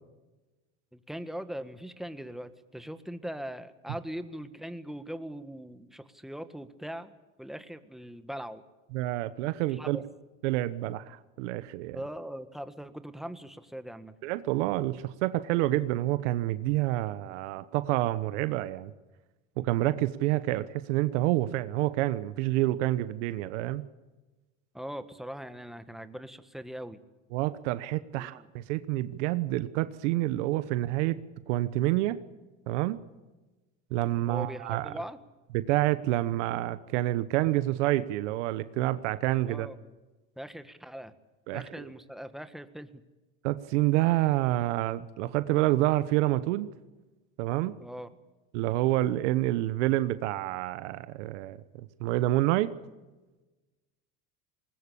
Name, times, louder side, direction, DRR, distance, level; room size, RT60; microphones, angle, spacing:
voice 1, 0.9-7.1 7.4-8.6 9.8-10.0 11.9-14.1 24.7-27.0 28.1-28.5 34.3-35.2 39.5-39.7 40.4-41.1 41.5-43.0 47.8-48.1, equal, ahead, 10 dB, 1.6 m, -40 dB
voice 2, 8.9-10.0 10.4-12.0 14.2-18.9 19.6-23.8 27.3-31.2 31.5-32.2 32.7-33.0 33.9-34.9 35.5-39.7 41.5-41.9 43.4-46.7 47.4-47.7 48.5-52.7, right 16 dB, 80° right, 14 dB, 1.1 m, -28 dB
20.0 x 20.0 x 8.6 m, 1.1 s
supercardioid pair, 105°, 35 cm